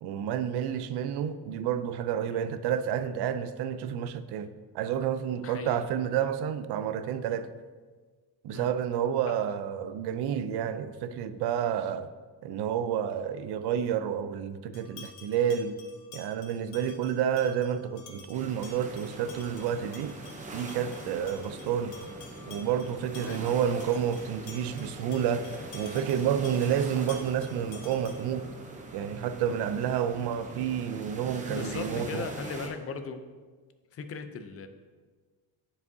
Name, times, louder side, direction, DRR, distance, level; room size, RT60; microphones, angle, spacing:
voice 1, 0.0-4.5 4.7-7.5 8.4-12.1 12.4-15.8 16.1-20.1 20.5-22.0 22.5-25.5 25.7-28.5 28.9-32.3, right 9 dB, 80° right, 0.5 m, -30 dB
voice 2, 5.4-5.8 8.5-8.7 9.3-9.4 23.3-23.4 31.5-33.2 33.9-34.7, left 5 dB, 35° left, 0.5 m, -38 dB
sound 1, 14.7-28.4, left 5 dB, 80° left, 1.0 m, -51 dB
sound 2, 18.3-32.7, right 2 dB, 20° right, 0.6 m, -43 dB
10.5 x 4.9 x 2.7 m
cardioid pair, 155°, 39 cm